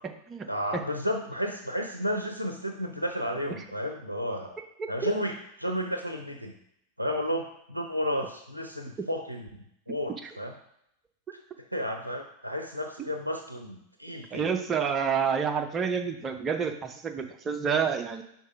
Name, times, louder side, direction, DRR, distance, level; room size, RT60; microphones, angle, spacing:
voice 1, 0.5-4.6 4.9-6.5 7.0-10.5 11.7-14.5, equal, 90° right, 4 dB, 0.5 m, -32 dB
voice 2, 4.8-5.1 10.2-10.3 14.3-18.2, right 6 dB, 20° right, 5 dB, 0.7 m, -29 dB
5.6 x 3.9 x 4.8 m, 0.76 s
figure-of-eight pair, 90°, 0 cm